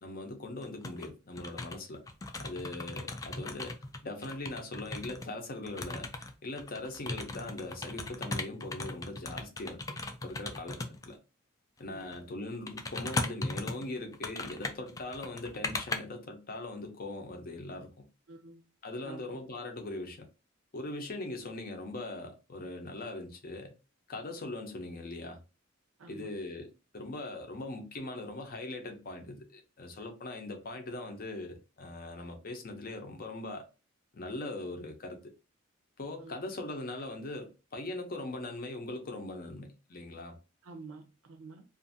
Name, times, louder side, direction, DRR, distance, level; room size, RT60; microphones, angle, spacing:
voice 1, 0.0-2.0 2.4-3.7 4.0-9.8 10.2-11.2 11.8-18.1 18.8-20.3 20.7-23.7 24.1-25.4 26.1-33.7 34.1-35.3 36.0-40.4, left 2 dB, 45° left, 0.7 m, -41 dB
sound 1, 0.6-1.1 1.4-5.3 5.7-11.1 11.9-12.2 12.7-16.0, left 2 dB, 15° left, 0.3 m, -37 dB
voice 2, 18.3-18.6 19.0-19.2 26.0-26.4 36.2-36.4 40.6-41.6, right 4 dB, 70° right, 0.6 m, -48 dB
2.6 x 2.5 x 2.6 m
head